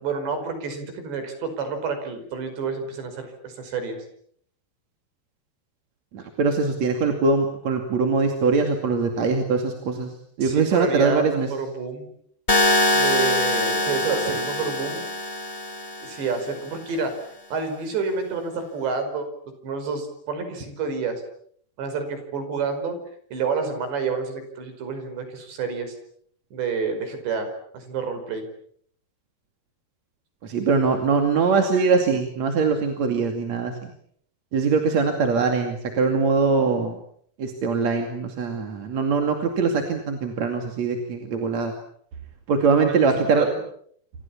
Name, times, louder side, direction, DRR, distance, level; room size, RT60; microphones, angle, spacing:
voice 1, 0.0-4.0 10.4-12.1 12.9-15.0 16.0-17.1 17.5-19.3 19.6-21.2 21.8-23.0 23.3-26.0 26.5-27.5 27.7-28.4 43.4-43.6, right 5 dB, 80° right, 8 dB, 7.4 m, -29 dB
voice 2, 6.1-10.1 10.4-11.5 30.4-33.9 34.5-37.0 37.4-41.7 42.5-43.5, right 4 dB, 45° right, 4 dB, 3.3 m, -22 dB
sound 1, 12.5-16.5, left 1 dB, 40° left, 0.5 m, -23 dB
28.0 x 27.0 x 7.2 m, 0.66 s
omnidirectional pair, 4.9 m